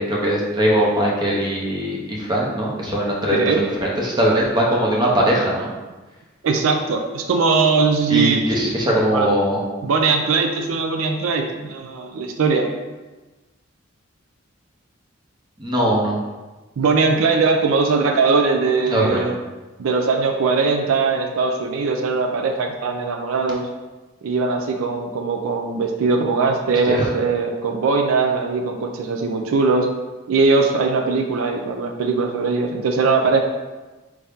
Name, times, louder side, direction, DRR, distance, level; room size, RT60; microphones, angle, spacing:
voice 1, 0.0-5.7 8.1-9.6 15.6-16.2 18.9-19.2 26.9-27.1, equal, 20° right, -3 dB, 0.8 m, -20 dB
voice 2, 3.3-3.6 6.4-8.8 9.1-9.3 9.8-12.7 16.8-19.3 19.8-23.7 24.2-29.9 30.3-33.4, right 4 dB, 80° right, 4 dB, 0.4 m, -20 dB
4.6 x 2.7 x 3.5 m, 1.2 s
head